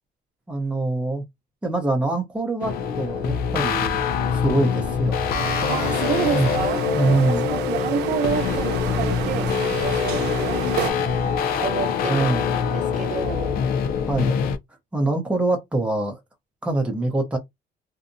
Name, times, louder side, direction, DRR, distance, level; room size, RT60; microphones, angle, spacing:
voice 1, 0.5-1.2 1.6-4.0 4.3-5.2 6.3-6.5 6.9-7.5 12.1-12.5 14.1-14.4 14.9-16.2 16.6-17.4, right 2 dB, 5° right, 0.7 m, -24 dB
sound 1, 2.6-14.6, left 7 dB, 60° left, 0.5 m, -24 dB
sound 2, 5.3-10.9, right 10 dB, 80° right, 0.5 m, -31 dB
voice 2, 5.7-6.8 7.3-11.2 11.6-12.3 12.6-13.6, right 7 dB, 45° right, 0.7 m, -29 dB
2.7 x 2.0 x 2.5 m
cardioid pair, 110°, 17 cm